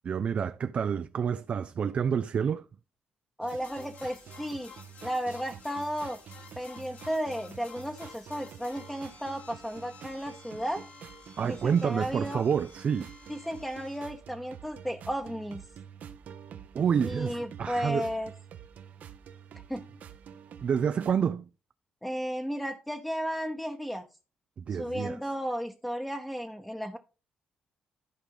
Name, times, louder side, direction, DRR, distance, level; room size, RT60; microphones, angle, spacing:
voice 1, 0.0-2.6 11.4-13.1 16.7-18.1 20.6-21.5 24.6-25.2, right 7 dB, 50° right, 0.4 m, -28 dB
voice 2, 3.4-4.7 5.0-6.2 6.6-10.8 11.4-12.4 13.3-15.6 17.0-18.3 19.7-19.9 22.0-24.1 24.7-27.0, equal, 5° left, 0.9 m, -34 dB
sound 1, 3.4-21.1, right 8 dB, 70° right, 1.0 m, -48 dB
sound 2, 3.5-14.0, left 5 dB, 70° left, 2.2 m, -52 dB
13.0 x 5.0 x 3.8 m
cardioid pair, 85°, 3 cm